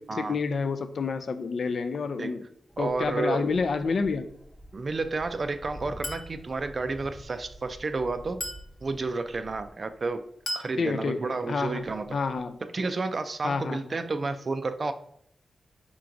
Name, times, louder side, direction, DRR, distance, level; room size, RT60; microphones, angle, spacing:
voice 1, 0.1-2.4 2.8-4.3 10.8-11.8 12.1-12.6 13.4-13.8, left 4 dB, 65° left, 10 dB, 0.3 m, -29 dB
sound 1, 2.7-12.6, right 1 dB, 5° left, 0.5 m, -49 dB
voice 2, 2.8-3.5 4.7-8.4 8.8-10.3 10.5-12.2 12.7-14.9, right 3 dB, 45° right, 9 dB, 0.3 m, -31 dB
Chink clink, 6.0-6.4 8.4-8.7 10.5-10.8, left 1 dB, 45° left, 0.7 m, -34 dB
4.5 x 3.7 x 2.5 m, 0.71 s
cardioid pair, 80°, 0 cm